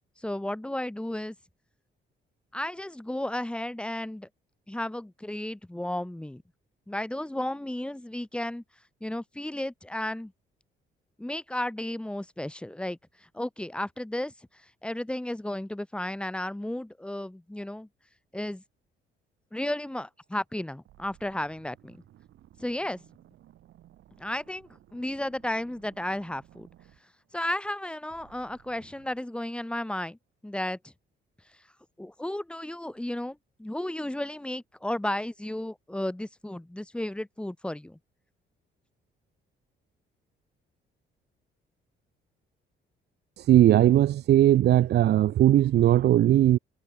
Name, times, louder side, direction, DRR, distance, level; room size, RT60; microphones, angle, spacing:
voice 1, 0.2-1.3 2.5-4.3 4.7-6.4 6.9-8.6 9.0-10.3 11.2-13.0 13.3-14.3 14.8-17.9 18.3-18.6 19.5-22.0 22.6-23.0 24.2-26.7 27.3-30.2 30.4-30.9 32.0-38.0, left 1 dB, 5° left, 0.9 m, -33 dB
sound 1, 20.2-20.5 20.8-27.8 28.1-29.2, right 13 dB, 80° right, 6.1 m, -57 dB
voice 2, 43.4-46.6, right 12 dB, 60° right, 0.5 m, -19 dB
cardioid pair, 90°, 20 cm